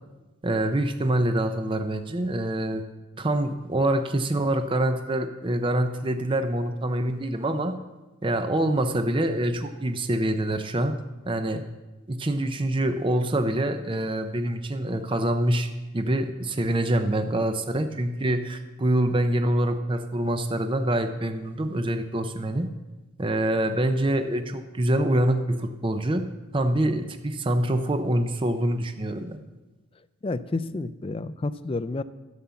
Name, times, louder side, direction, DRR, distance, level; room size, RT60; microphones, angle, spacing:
voice 1, 0.4-2.8 3.2-7.7 8.2-11.0 11.3-11.6 12.1-22.7 23.2-26.2 26.5-29.4, right 1 dB, 25° right, 7 dB, 0.5 m, -25 dB
voice 2, 30.2-32.0, left 2 dB, 25° left, 12 dB, 0.4 m, -30 dB
11.5 x 7.2 x 7.0 m, 1.1 s
head